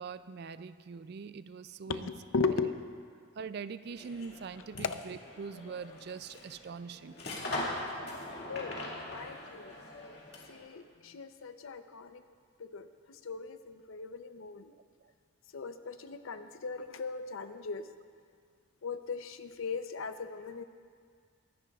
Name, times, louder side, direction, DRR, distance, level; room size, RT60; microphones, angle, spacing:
voice 1, 0.0-2.1 2.5-2.6 3.4-7.2, right 5 dB, 50° right, 13 dB, 0.3 m, -43 dB
voice 2, 1.9-2.8 4.7-5.0 8.5-8.8 9.1-9.7 10.5-12.2 12.6-14.7 15.5-17.9 18.8-20.6, left 4 dB, 75° left, 9 dB, 0.6 m, -37 dB
sound 1, 3.9-10.7, left 1 dB, 50° left, 2.1 m, -41 dB
22.5 x 10.5 x 2.4 m, 2.1 s
head